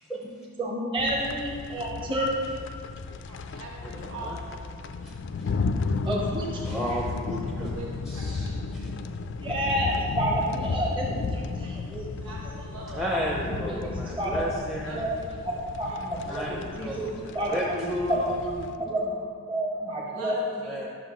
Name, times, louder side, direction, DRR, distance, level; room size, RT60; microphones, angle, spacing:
voice 1, 0.6-2.4 6.0-6.5 6.7-7.0 7.5-7.7 9.4-12.1 13.2-14.6 14.9-15.1 15.5-19.1 19.5-20.4, right 1 dB, 20° right, -3 dB, 0.9 m, -30 dB
sound 1, 1.0-18.7, left 4 dB, 55° left, 0.3 m, -34 dB
voice 2, 3.3-4.7 7.4-7.9 8.1-8.2 12.2-13.2 14.8-15.0 15.8-16.0 20.1-20.9, right 2 dB, 80° right, -4 dB, 1.4 m, -41 dB
voice 3, 6.7-7.7 8.1-8.9 12.9-15.0 16.3-18.3 20.7-20.9, equal, ahead, -4 dB, 0.5 m, -33 dB
10.0 x 6.4 x 3.1 m, 2.1 s
head